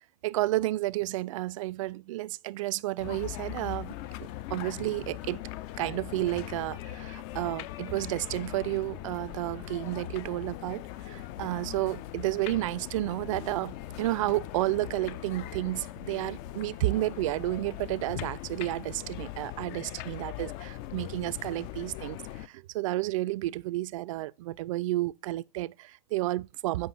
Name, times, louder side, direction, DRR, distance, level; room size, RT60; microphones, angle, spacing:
voice 1, 0.2-3.9 4.5-5.5 5.8-26.9, right 17 dB, 50° right, 0.4 m, -31 dB
sound 1, 3.0-22.5, left 14 dB, 40° left, 0.5 m, -40 dB
sound 2, 6.5-8.7 9.0-9.3 10.0-10.8 11.2-14.2 14.7-15.6 15.9-16.9 17.2-17.9 18.2-18.7 19.1-19.3 19.8-20.4, left 8 dB, 70° left, 3.3 m, -49 dB
7.8 x 5.1 x 4.0 m
hypercardioid pair, 110°, 21 cm